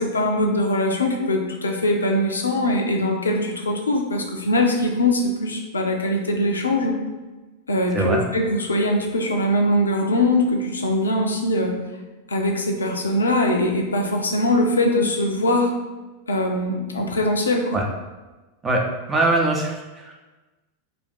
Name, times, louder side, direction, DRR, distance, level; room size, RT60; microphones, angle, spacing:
voice 1, 0.0-7.0 7.7-11.7 12.3-15.7 16.3-17.6, left 1 dB, 75° left, 2 dB, 0.5 m, -22 dB
voice 2, 19.1-20.2, right 2 dB, 15° right, 0 dB, 0.6 m, -22 dB
2.5 x 2.5 x 4.0 m, 1.2 s
figure-of-eight pair, 90°, 0 cm